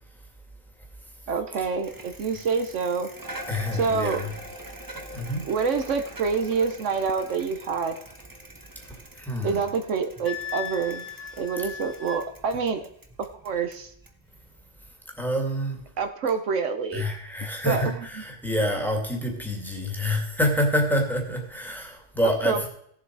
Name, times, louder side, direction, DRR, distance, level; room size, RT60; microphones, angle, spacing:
voice 1, 1.3-3.1 3.7-4.2 5.4-8.0 9.4-11.1 11.4-12.8 13.2-13.9 16.0-17.0 17.6-17.9 22.4-22.7, right 5 dB, 75° right, 8 dB, 1.2 m, -27 dB
Bicycle, 1.8-14.9, right 1 dB, 15° right, 1.2 m, -44 dB
voice 2, 3.5-4.3 5.1-5.5 8.8-9.6 15.1-15.8 16.9-22.7, equal, ahead, 1 dB, 2.3 m, -27 dB
Wind instrument woodwind instrument, 10.2-12.3, left 8 dB, 70° left, 1.4 m, -37 dB
17.0 x 7.4 x 4.7 m, 0.69 s
omnidirectional pair, 1.3 m